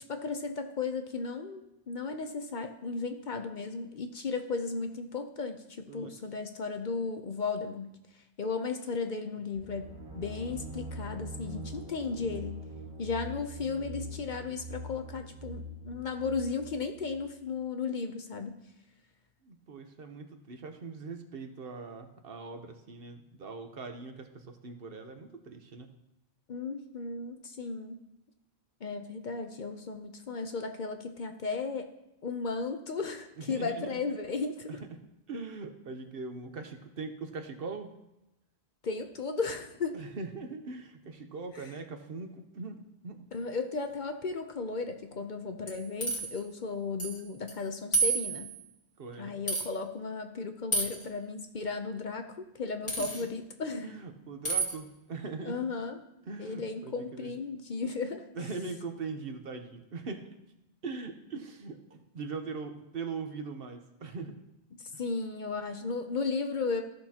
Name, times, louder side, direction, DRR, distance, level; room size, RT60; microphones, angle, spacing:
voice 1, 0.0-7.9 8.4-12.7 13.0-18.6 26.5-28.1 28.8-31.9 32.2-34.8 38.8-40.0 41.5-41.7 43.3-48.5 49.2-54.0 55.4-56.0 56.4-58.3 64.8-66.8, left 4 dB, 50° left, 6 dB, 0.7 m, -35 dB
sound 1, 9.5-17.3, right 1 dB, 85° right, 1.8 m, -43 dB
voice 2, 19.4-25.9 33.5-34.0 34.9-35.0 35.3-37.9 39.9-43.3 49.0-49.3 53.0-53.3 53.8-55.6 56.3-57.3 58.4-60.3 60.8-64.4, right 4 dB, 65° right, 6 dB, 1.1 m, -41 dB
sound 2, 45.7-46.4 47.0-47.2 47.5-47.6 47.9-48.6 49.5-49.6 50.7-51.0 52.9-53.2 54.4-54.7, right 3 dB, 30° left, 1.4 m, -30 dB
14.0 x 6.2 x 2.9 m, 0.92 s
omnidirectional pair, 1.1 m